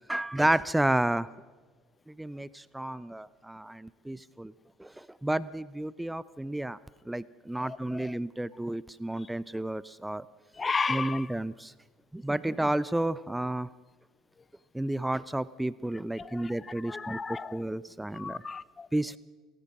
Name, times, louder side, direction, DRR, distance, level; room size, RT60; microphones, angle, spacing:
voice 1, 0.1-1.3 2.2-4.5 4.8-6.8 7.1-10.2 10.9-11.7 12.1-13.7 14.7-17.2 17.5-18.4 18.9-19.2, right 1 dB, 10° right, 0.6 m, -31 dB
voice 2, 10.6-11.3 16.3-16.5 16.9-17.6 18.1-18.9, left 4 dB, 30° left, 0.8 m, -33 dB
28.5 x 15.5 x 6.1 m
hypercardioid pair, 65°, 0 cm